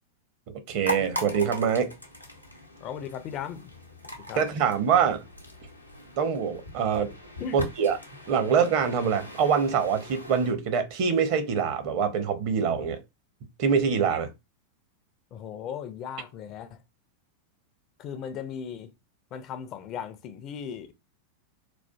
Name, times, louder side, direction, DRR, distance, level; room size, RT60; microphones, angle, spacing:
voice 1, 0.7-1.9 4.3-5.2 6.2-7.1 7.5-8.0 8.3-13.0 13.6-14.3, right 6 dB, 45° right, 0.7 m, -24 dB
sound 1, 0.8-10.5, equal, 90° left, 0.7 m, -40 dB
voice 2, 2.8-3.7 4.3-4.4 7.4-7.6 15.3-16.8 18.0-18.9 19.3-20.9, left 8 dB, 35° left, 0.4 m, -37 dB
4.2 x 2.4 x 2.3 m
figure-of-eight pair, 90°, 0 cm